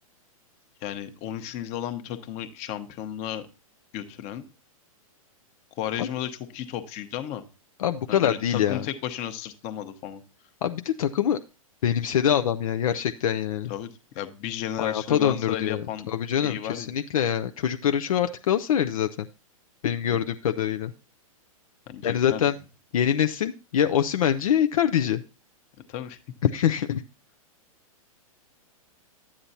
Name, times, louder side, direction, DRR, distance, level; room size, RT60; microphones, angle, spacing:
voice 1, 0.8-3.5 3.9-4.5 5.8-7.4 8.1-10.2 13.7-13.9 14.1-16.1 16.4-16.9 20.1-20.3 21.9-22.6 25.9-26.2, left 11 dB, 40° left, 8 dB, 1.1 m, -34 dB
voice 2, 7.8-8.8 10.6-11.4 11.8-13.7 14.8-19.1 19.8-20.9 22.0-22.5 22.9-25.2 26.4-27.0, left 9 dB, 70° left, 8 dB, 0.5 m, -24 dB
12.0 x 8.6 x 2.8 m, 0.32 s
hypercardioid pair, 115°, 18 cm